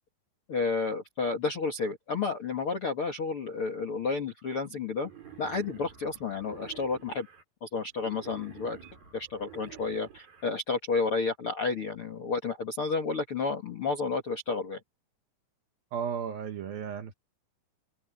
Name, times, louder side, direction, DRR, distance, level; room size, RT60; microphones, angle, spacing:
voice 1, 0.5-5.1 5.4-7.3 7.6-14.8, left 4 dB, 50° left, 1.6 m, -31 dB
Wild animals, 4.9-7.4 7.9-10.4, right 8 dB, 50° right, 8.3 m, -50 dB
voice 2, 15.9-17.1, right 7 dB, 70° right, 2.5 m, -34 dB
open air
omnidirectional pair, 5.4 m